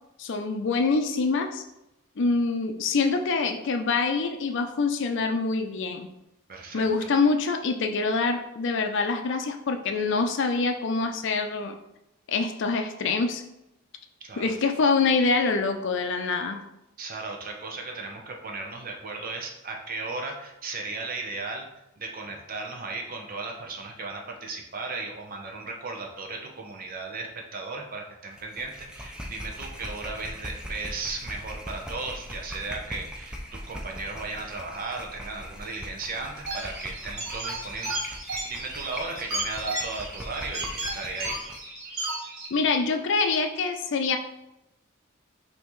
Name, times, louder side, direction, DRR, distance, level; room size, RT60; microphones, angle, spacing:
voice 1, 0.2-1.6 2.2-6.1 6.7-11.8 12.3-13.4 14.4-16.6 42.5-44.2, left 4 dB, 60° left, 6 dB, 0.5 m, -25 dB
voice 2, 6.5-7.1 14.2-14.5 17.0-21.7 22.0-38.2 38.5-41.4, right 3 dB, 45° right, 1 dB, 0.7 m, -36 dB
sound 1, 28.3-41.7, equal, 5° right, 0.4 m, -40 dB
sound 2, 36.5-42.5, right 2 dB, 80° right, 1.3 m, -34 dB
5.5 x 2.8 x 3.1 m, 0.88 s
head